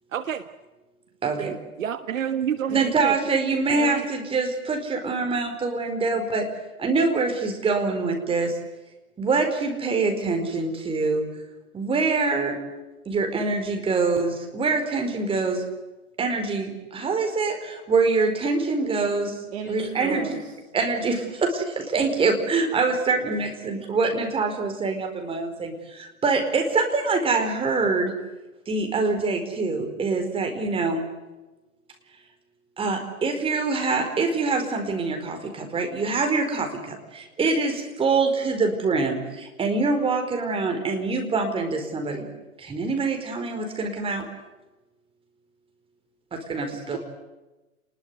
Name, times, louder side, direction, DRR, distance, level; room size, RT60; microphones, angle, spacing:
voice 1, 0.1-0.5 1.4-3.1 3.7-4.1, right 9 dB, 60° right, 11 dB, 1.5 m, -29 dB
voice 2, 1.2-1.5 2.7-6.4 6.8-8.5 9.2-11.2 11.7-12.6 13.1-15.6 16.2-19.4 19.7-20.2 20.7-28.1 28.7-31.0 32.8-42.3 42.6-44.3 46.3-47.0, right 4 dB, 10° right, 4 dB, 4.6 m, -25 dB
voice 3, 19.5-20.5 46.7-47.0, right 8 dB, 45° right, 5 dB, 3.1 m, -34 dB
29.0 x 21.0 x 8.2 m, 1.1 s
figure-of-eight pair, 125°, 44 cm